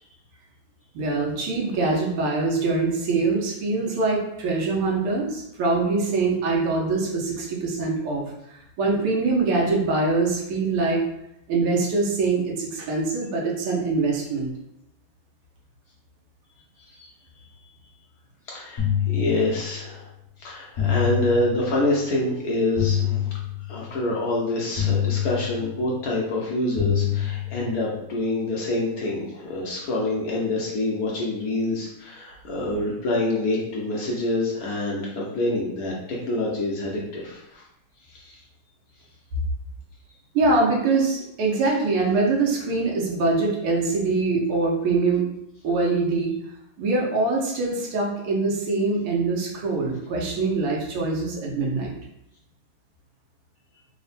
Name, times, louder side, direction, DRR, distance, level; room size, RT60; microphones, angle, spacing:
voice 1, 1.0-11.0 11.5-14.5 40.4-45.2 45.6-46.3 46.8-51.9, right 3 dB, 85° right, -2 dB, 1.7 m, -23 dB
voice 2, 18.5-20.1 20.4-23.3 23.7-37.6 38.1-38.4, left 2 dB, 65° left, -3 dB, 0.9 m, -26 dB
sound 1, 18.8-20.0 20.8-22.0 22.8-24.0 24.8-26.0 26.8-28.0, left 10 dB, 40° left, 1.0 m, -26 dB
4.0 x 2.1 x 4.0 m, 0.81 s
omnidirectional pair, 2.4 m